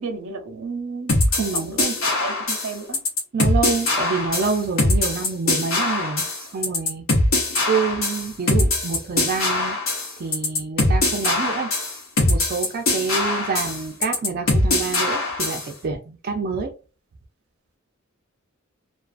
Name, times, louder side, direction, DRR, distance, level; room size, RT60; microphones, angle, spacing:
voice 1, 0.0-3.0, right 4 dB, 85° right, 0.6 m, -32 dB
sound 1, 1.1-15.7, left 2 dB, 70° left, 0.9 m, -22 dB
voice 2, 1.4-1.8 3.3-6.2 6.5-7.0 7.7-9.8 10.2-11.7 12.3-16.7, right 5 dB, 45° right, 0.4 m, -27 dB
2.4 x 2.3 x 2.3 m
head